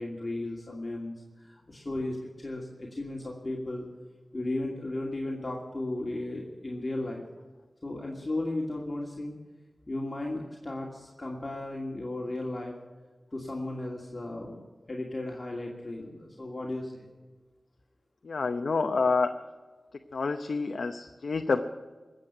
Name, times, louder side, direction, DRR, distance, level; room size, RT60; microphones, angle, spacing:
voice 1, 0.0-3.9 4.3-7.2 7.8-9.4 9.9-12.8 13.3-17.1, left 2 dB, 35° left, -1 dB, 2.5 m, -35 dB
voice 2, 18.2-19.3 20.1-21.6, left 4 dB, 80° left, 6 dB, 0.8 m, -28 dB
21.0 x 7.8 x 8.8 m, 1.3 s
wide cardioid pair, 60°, 0 cm